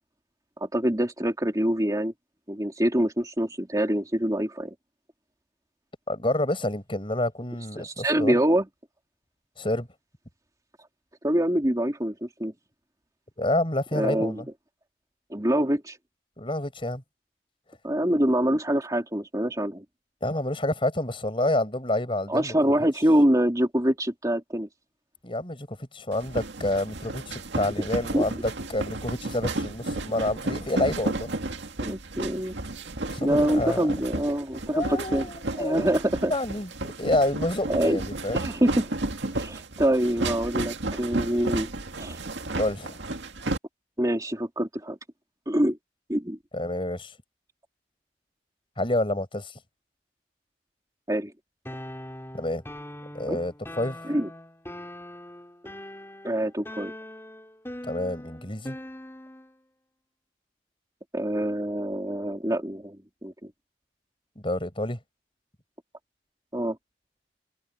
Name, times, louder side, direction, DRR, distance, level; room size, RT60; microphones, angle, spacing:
voice 1, 0.6-2.1 2.5-4.7 7.8-8.7 11.2-12.5 13.9-14.4 15.3-16.0 17.8-19.8 22.3-24.7 28.1-28.3 31.8-32.6 33.2-35.3 35.6-36.3 37.7-38.0 38.3-38.9 39.3-41.7 42.0-42.2 44.0-45.0 45.5-45.8 46.1-46.4 51.1-51.3 53.3-53.4 54.1-54.3 56.2-56.9 61.1-63.5 66.5-66.8, right 1 dB, 20° right, 2.9 m, -25 dB
voice 2, 6.1-8.4 9.6-9.9 13.4-14.4 16.4-17.0 20.2-22.5 25.2-31.3 33.1-33.9 34.7-36.0 36.3-38.4 42.6-43.0 46.5-47.1 48.8-49.5 52.3-52.6 53.1-54.1 57.8-58.8 64.4-65.0, left 1 dB, 30° left, 5.8 m, -28 dB
sound 1, 26.1-43.6, right 2 dB, 80° right, 2.1 m, -33 dB
sound 2, 51.6-59.5, left 1 dB, 15° left, 4.3 m, -42 dB
head